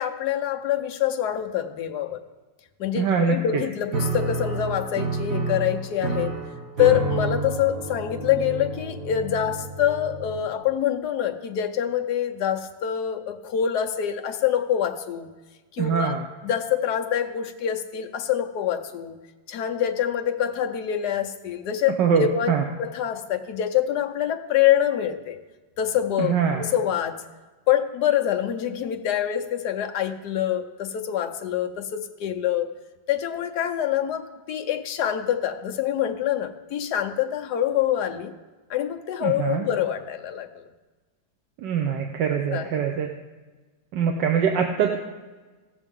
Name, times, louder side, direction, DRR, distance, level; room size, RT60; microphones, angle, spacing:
voice 1, 0.0-2.2 2.8-6.4 6.8-15.3 15.7-16.1 16.4-19.2 19.5-22.5 22.8-25.4 25.8-27.2 27.7-32.7 33.1-38.3 38.7-40.6 42.5-42.8, left 10 dB, 65° left, 5 dB, 1.3 m, -25 dB
voice 2, 2.9-3.6 15.8-16.2 22.0-22.6 26.2-26.6 39.2-39.7 41.6-43.1 43.9-45.0, right 7 dB, 75° right, 3 dB, 1.4 m, -23 dB
Piano, 3.9-10.7, right 3 dB, 50° right, 1.6 m, -30 dB
17.5 x 6.7 x 3.6 m, 1.3 s
omnidirectional pair, 1.9 m